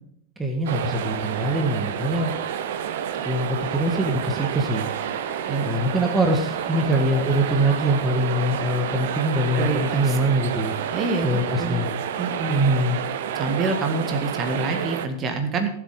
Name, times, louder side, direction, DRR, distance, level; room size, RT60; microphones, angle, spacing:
voice 1, 0.4-2.4 3.2-4.9 5.6-10.7 11.2-11.9 12.5-13.0, right 1 dB, 10° right, 4 dB, 1.7 m, -23 dB
sound 1, 0.6-15.1, right 9 dB, 55° right, 0.9 m, -29 dB
voice 2, 9.5-10.2 10.9-11.8 12.2-12.6 13.3-15.7, right 3 dB, 30° right, 5 dB, 1.8 m, -26 dB
15.5 x 7.4 x 5.1 m, 0.68 s
figure-of-eight pair, 90°, 0 cm